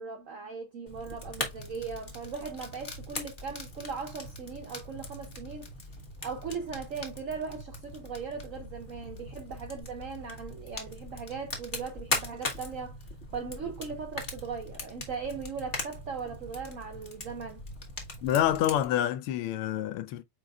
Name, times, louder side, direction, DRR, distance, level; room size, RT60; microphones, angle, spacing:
voice 1, 0.0-5.7 6.2-13.0 13.3-17.6, right 5 dB, 65° right, 0.8 m, -38 dB
Fire, 0.9-18.8, left 2 dB, 30° left, 1.1 m, -40 dB
voice 2, 18.2-20.2, left 11 dB, 85° left, 1.5 m, -27 dB
5.0 x 4.6 x 2.3 m
omnidirectional pair, 2.4 m